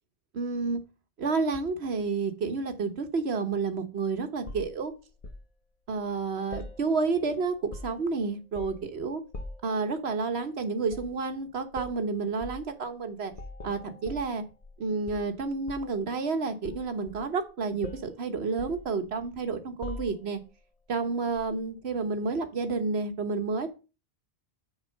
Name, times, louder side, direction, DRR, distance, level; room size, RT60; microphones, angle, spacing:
voice 1, 0.3-0.8 1.2-4.9 5.9-9.2 9.6-13.3 13.6-14.4 14.8-20.4 20.9-23.7, right 4 dB, 80° right, 8 dB, 1.4 m, -30 dB
sound 1, 4.5-5.5 6.5-7.3 7.5-8.1 8.5-8.9 9.3-9.7 10.9-11.2 11.7-12.0 12.4-12.7 13.3-14.8 15.1-16.0 16.6-17.5 17.8-18.1 18.6-19.4 19.8-20.4 21.4-21.5, left 2 dB, 35° left, 0.9 m, -42 dB
6.5 x 4.8 x 6.4 m, 0.32 s
omnidirectional pair, 1.1 m